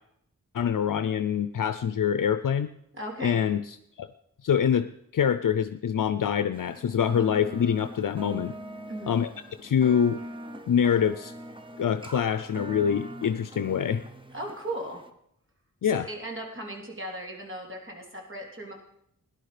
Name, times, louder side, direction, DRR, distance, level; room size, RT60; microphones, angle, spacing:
voice 1, 0.5-2.7 3.2-3.7 4.0-4.1 4.4-8.5 9.1-9.3 9.6-10.2 10.7-11.3 11.8-14.0 15.8-16.1, left 8 dB, 75° left, 11 dB, 0.6 m, -25 dB
voice 2, 2.9-3.4 8.9-9.2 14.3-15.0 15.8-18.7, right 1 dB, 40° right, 0 dB, 3.1 m, -37 dB
sound 1, 6.5-15.1, right 1 dB, 15° right, 0.9 m, -42 dB
17.0 x 11.0 x 5.0 m, 0.73 s
wide cardioid pair, 110°, 33 cm